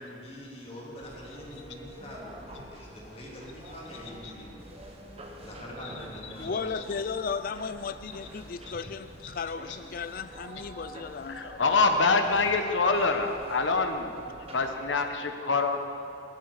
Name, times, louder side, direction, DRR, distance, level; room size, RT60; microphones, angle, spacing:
voice 1, 0.0-4.7 5.4-6.9, equal, 35° left, -3 dB, 2.6 m, -44 dB
sound 1, 1.0-14.7, right 1 dB, 35° right, 1.4 m, -47 dB
voice 2, 6.4-11.6, left 5 dB, 50° left, 13 dB, 0.4 m, -35 dB
voice 3, 11.3-14.1 14.5-15.8, left 3 dB, 80° left, 6 dB, 1.2 m, -25 dB
16.0 x 13.0 x 4.9 m, 3.0 s
head